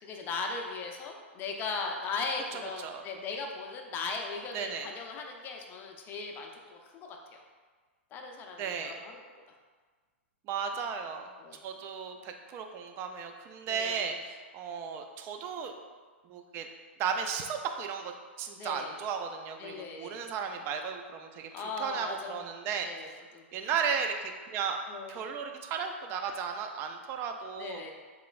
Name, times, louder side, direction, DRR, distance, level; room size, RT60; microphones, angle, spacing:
voice 1, 0.0-7.4 8.1-9.2 11.4-11.6 13.7-14.1 18.6-18.9 19.6-20.3 21.5-22.5 22.8-23.7 24.9-25.2 27.6-27.9, left 4 dB, 30° left, 2 dB, 0.5 m, -38 dB
voice 2, 2.5-3.0 4.5-4.9 8.6-9.0 10.5-11.3 11.6-15.8 16.2-16.7 17.0-18.1 18.4-22.9 23.5-24.8 25.1-27.9, right 6 dB, 35° right, 5 dB, 0.3 m, -35 dB
3.6 x 3.0 x 2.4 m, 1.5 s
hypercardioid pair, 115°, 7 cm